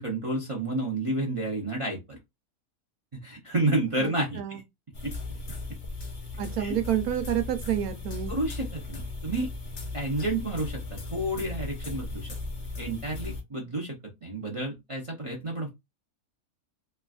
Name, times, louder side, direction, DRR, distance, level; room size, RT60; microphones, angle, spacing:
voice 1, 0.0-2.2 3.1-4.6 5.0-5.1 6.6-6.8 8.3-9.5 9.9-12.3 12.8-15.7, right 2 dB, 35° right, 0.5 m, -30 dB
voice 2, 4.0-4.6 6.4-8.3, right 10 dB, 80° right, 1.1 m, -29 dB
sound 1, 4.9-13.4, left 3 dB, 55° left, 0.9 m, -37 dB
3.2 x 2.4 x 2.3 m
omnidirectional pair, 1.5 m